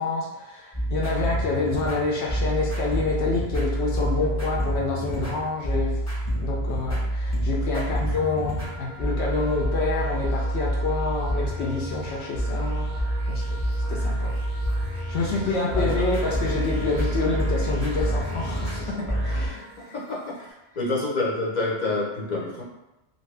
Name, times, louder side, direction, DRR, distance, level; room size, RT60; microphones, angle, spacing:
voice 1, 0.0-6.0 6.3-13.6 13.9-14.3 14.9-19.9, left 3 dB, 75° left, -3 dB, 0.8 m, -28 dB
sound 1, 0.7-19.5, right 1 dB, 15° left, 0.8 m, -27 dB
sound 2, 8.4-20.5, right 3 dB, 60° right, 0.6 m, -45 dB
Wind instrument woodwind instrument, 16.0-19.8, left 1 dB, 25° right, 0.9 m, -43 dB
voice 2, 19.9-20.3 20.7-22.6, left 2 dB, 45° left, -4 dB, 0.7 m, -27 dB
2.7 x 2.6 x 3.2 m, 0.99 s
omnidirectional pair, 1.1 m